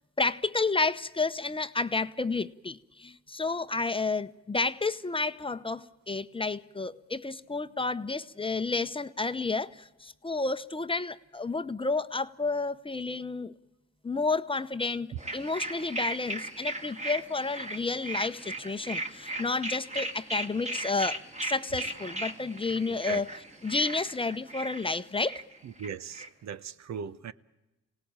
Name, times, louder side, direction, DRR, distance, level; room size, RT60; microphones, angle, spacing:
voice 1, 0.2-13.5 14.0-23.3 23.6-25.4, left 3 dB, 15° left, 0.8 m, -31 dB
sound 1, 15.2-26.3, right 2 dB, 25° right, 2.1 m, -37 dB
voice 2, 22.9-23.2 25.8-27.3, right 7 dB, 65° right, 1.0 m, -38 dB
26.5 x 18.0 x 8.8 m
cardioid pair, 90°, 30 cm